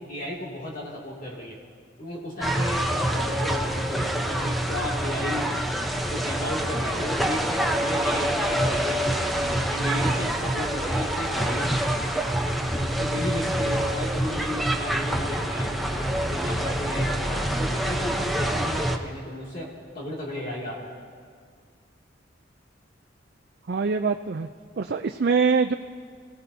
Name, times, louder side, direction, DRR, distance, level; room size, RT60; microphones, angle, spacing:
voice 1, 0.0-1.6 2.0-5.5 6.1-11.8 12.6-20.9, left 1 dB, 45° left, -5 dB, 2.5 m, -34 dB
sound 1, 2.4-19.0, right 1 dB, ahead, 0.8 m, -26 dB
voice 2, 23.7-24.5 24.8-25.7, right 5 dB, 55° right, 5 dB, 0.4 m, -23 dB
28.5 x 18.0 x 2.7 m, 2.1 s
head